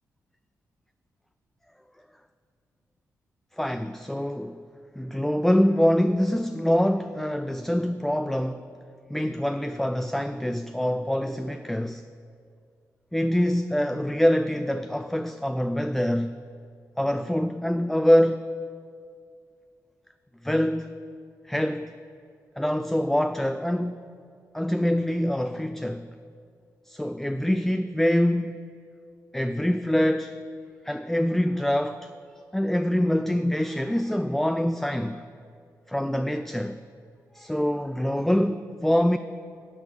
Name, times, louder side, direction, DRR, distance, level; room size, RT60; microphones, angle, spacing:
voice 1, 3.6-4.6 5.0-8.6 9.1-12.0 13.1-16.3 17.0-18.4 20.4-20.9 21.5-21.9 22.6-24.0 24.5-26.1 26.9-28.6 29.3-30.4 30.9-32.1 32.5-35.2 35.9-36.8 37.3-39.2, equal, 5° left, 0.3 m, -25 dB
10.5 x 4.9 x 8.1 m
supercardioid pair, 50°, 7 cm